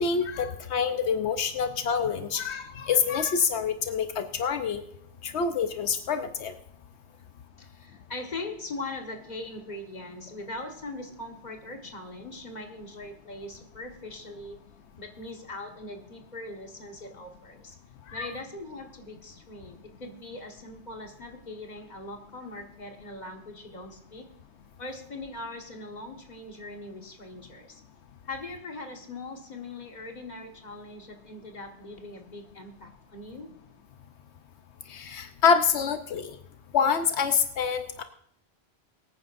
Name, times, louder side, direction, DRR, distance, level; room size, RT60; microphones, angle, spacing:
voice 1, 0.0-4.8 5.2-6.5 18.1-18.3 34.9-36.3 36.7-38.0, left 6 dB, 85° left, 7 dB, 1.1 m, -26 dB
voice 2, 7.6-14.6 15.0-17.8 18.1-24.3 24.8-27.8 28.3-33.5, left 2 dB, 40° left, 3 dB, 1.6 m, -41 dB
23.0 x 9.6 x 2.6 m, 0.70 s
omnidirectional pair, 1.1 m